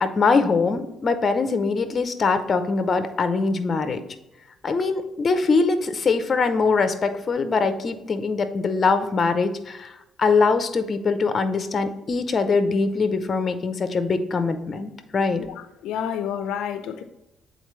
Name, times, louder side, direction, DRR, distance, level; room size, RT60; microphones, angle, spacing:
voice 1, 0.0-4.0 4.6-15.4, left 4 dB, 40° left, 9 dB, 0.6 m, -22 dB
voice 2, 15.8-17.0, left 8 dB, 90° left, 9 dB, 0.4 m, -29 dB
8.0 x 3.9 x 3.1 m, 0.92 s
cardioid pair, 110°, 0 cm